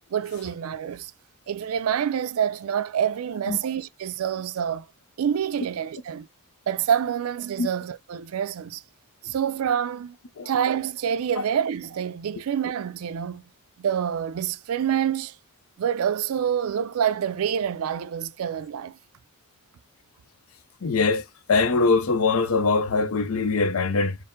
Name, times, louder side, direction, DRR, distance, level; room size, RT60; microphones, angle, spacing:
voice 1, 0.1-1.1 1.5-4.9 5.2-6.3 6.7-8.8 9.2-10.2 10.5-13.4 13.8-15.3 15.8-19.0, right 8 dB, 75° right, 0.4 m, -27 dB
voice 2, 20.8-21.2 21.5-24.2, left 4 dB, 70° left, 0.6 m, -22 dB
4.4 x 2.0 x 3.6 m
head